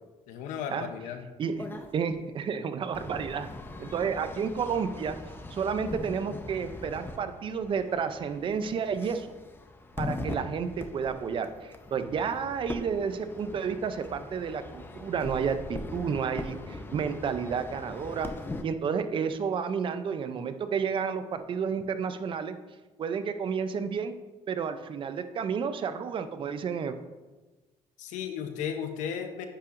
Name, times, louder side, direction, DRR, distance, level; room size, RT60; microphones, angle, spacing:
voice 1, 0.3-1.3 28.0-29.5, left 8 dB, 85° left, 7 dB, 0.8 m, -35 dB
voice 2, 1.4-3.5 3.8-5.2 5.5-9.3 10.0-18.3 18.6-22.6 23.0-24.1 24.5-26.9, right 6 dB, 45° right, 10 dB, 0.5 m, -31 dB
sound 1, 1.6-1.9 2.9-18.6, left 2 dB, 15° left, 0.6 m, -41 dB
9.7 x 5.7 x 2.6 m, 1.2 s
cardioid pair, 110°, 12 cm